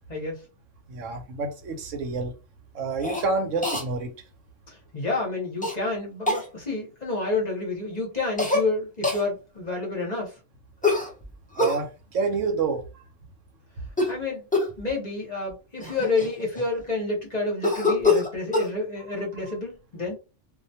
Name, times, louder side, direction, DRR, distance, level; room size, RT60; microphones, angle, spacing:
voice 1, 0.1-0.4 4.7-10.3 14.1-14.5 14.8-20.2, left 3 dB, 40° left, 0.9 m, -29 dB
voice 2, 0.9-2.3 2.7-4.1 11.6-12.8 19.5-19.6, right 4 dB, 85° right, 1.1 m, -28 dB
Cough, 3.0-3.3 3.6-3.8 5.6-5.8 6.3-6.5 8.4-8.7 9.0-9.2 10.8-11.8 13.9-14.2 14.5-14.8 15.5-15.6 15.8-16.8 17.6-18.7, left 3 dB, 10° left, 0.4 m, -24 dB
2.4 x 2.2 x 2.7 m
omnidirectional pair, 1.3 m